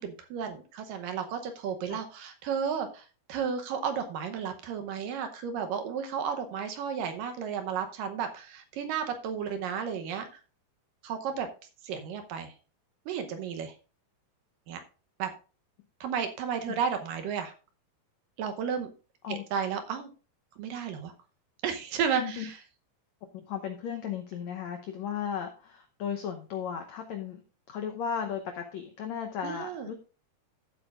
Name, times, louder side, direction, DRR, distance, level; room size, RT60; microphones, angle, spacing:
voice 1, 0.0-10.3 11.0-11.5 11.8-12.5 13.1-13.7 14.7-14.8 15.2-15.3 16.0-17.5 18.4-18.9 19.3-20.1 20.6-21.1 21.6-22.6 29.4-29.9, right 7 dB, 70° right, 7 dB, 2.3 m, -33 dB
voice 2, 22.2-22.5 23.5-27.4 27.7-29.9, left 8 dB, 85° left, 6 dB, 1.5 m, -35 dB
15.0 x 8.0 x 2.5 m, 0.35 s
omnidirectional pair, 4.5 m